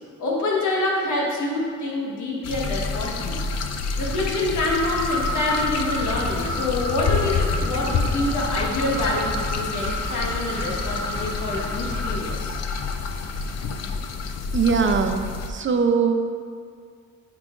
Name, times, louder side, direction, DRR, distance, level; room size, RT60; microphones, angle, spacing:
voice 1, 0.2-3.4 4.0-12.5, left 2 dB, 80° left, -3 dB, 1.4 m, -26 dB
sound 1, 2.4-15.5, left 5 dB, 60° left, 0.5 m, -28 dB
sound 2, 4.6-12.4, equal, 10° left, 0.6 m, -31 dB
sound 3, 6.1-11.7, right 1 dB, 15° right, 1.4 m, -40 dB
voice 2, 14.5-16.1, right 5 dB, 40° right, 6 dB, 0.6 m, -21 dB
9.7 x 4.8 x 2.5 m, 2.1 s
cardioid pair, 80°, 29 cm